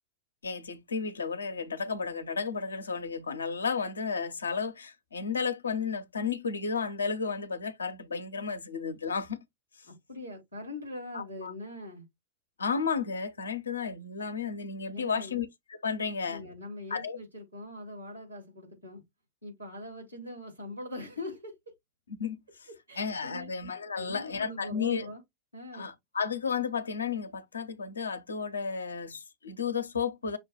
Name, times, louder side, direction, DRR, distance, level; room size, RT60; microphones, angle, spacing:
voice 1, 0.4-9.4 11.1-11.5 12.6-16.5 16.9-17.2 22.2-22.7 23.0-25.1 25.7-30.4, left 5 dB, 75° left, 0.7 m, -33 dB
voice 2, 9.8-12.1 14.9-15.3 16.2-19.0 19.4-21.5 22.9-23.5 24.0-25.2 25.5-25.9, left 1 dB, 85° right, 2.8 m, -42 dB
6.1 x 2.3 x 3.7 m
figure-of-eight pair, 90°, 0 cm